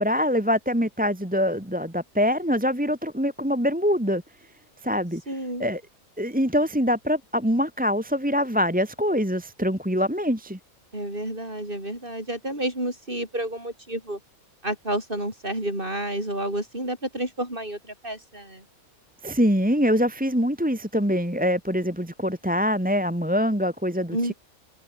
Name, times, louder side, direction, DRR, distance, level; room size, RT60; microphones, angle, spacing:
voice 1, 0.0-4.2 4.8-5.2 5.6-5.8 6.2-10.6 19.2-24.3, equal, 5° right, 2.3 m, -24 dB
voice 2, 5.3-5.6 10.9-14.2 14.6-18.6 24.1-24.3, right 1 dB, 35° right, 8.3 m, -30 dB
omnidirectional pair, 1.6 m